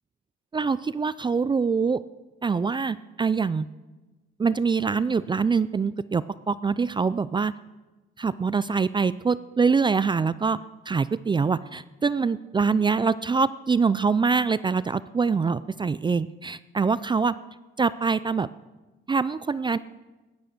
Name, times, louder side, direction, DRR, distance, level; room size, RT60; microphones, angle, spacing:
voice 1, 0.5-2.0 2.4-3.7 4.4-7.5 8.2-10.6 10.9-17.4 17.8-18.5 19.1-19.8, right 5 dB, 25° right, 17 dB, 0.4 m, -24 dB
17.0 x 12.0 x 6.6 m, 1.2 s
cardioid pair, 90°, 20 cm